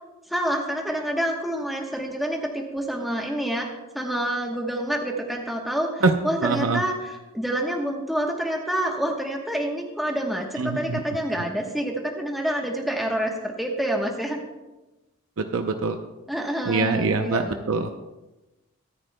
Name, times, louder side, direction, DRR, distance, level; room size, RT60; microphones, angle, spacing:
voice 1, 0.3-3.7 3.9-14.4 16.3-17.7, right 1 dB, ahead, -1 dB, 1.0 m, -27 dB
voice 2, 6.4-6.8 10.6-11.0 15.5-16.0 16.7-17.9, right 3 dB, 70° right, 6 dB, 0.6 m, -23 dB
24.0 x 9.9 x 2.2 m, 1.1 s
head